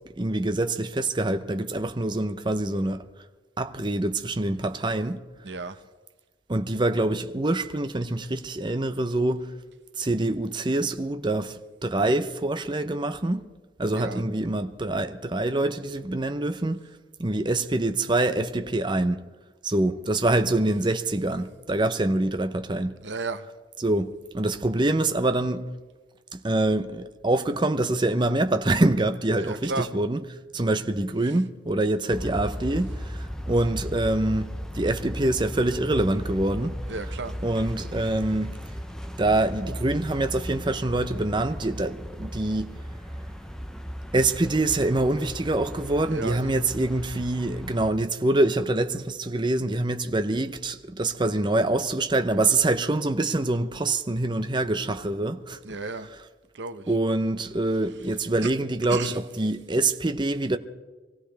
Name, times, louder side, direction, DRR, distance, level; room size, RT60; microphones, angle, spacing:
voice 1, 0.0-3.1 3.6-5.2 6.5-9.5 10.0-13.5 13.8-16.8 17.2-19.2 19.6-23.0 23.8-25.7 26.3-30.2 30.5-34.5 34.7-36.8 37.4-38.6 39.2-42.8 44.1-55.8 56.9-60.6, right 2 dB, 25° right, 0.7 m, -25 dB
voice 2, 5.4-5.8 13.9-14.2 23.0-23.5 29.4-29.9 31.2-31.3 36.9-37.4 46.1-46.5 55.6-56.1 56.5-56.9 58.4-58.5 58.9-59.2, right 3 dB, 85° right, 0.9 m, -33 dB
sound 1, 32.1-47.9, equal, 5° left, 0.8 m, -36 dB
24.5 x 16.5 x 3.4 m
head